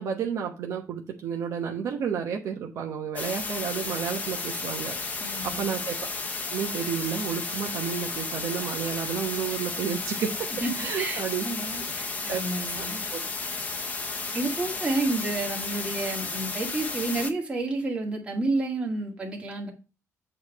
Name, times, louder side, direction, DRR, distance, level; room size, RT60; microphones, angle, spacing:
voice 1, 0.0-5.0 5.4-6.0 6.5-10.5 10.8-11.4 11.8-11.9 12.3-12.4 12.8-13.2, right 7 dB, 60° right, 1 dB, 1.1 m, -31 dB
sound 1, 3.2-17.3, left 3 dB, 25° left, 0.8 m, -33 dB
voice 2, 5.2-5.7 10.6-10.7 11.0-13.0 14.3-19.7, right 2 dB, 20° right, -1 dB, 1.9 m, -30 dB
8.1 x 3.2 x 6.4 m, 0.32 s
cardioid pair, 160°, 6 cm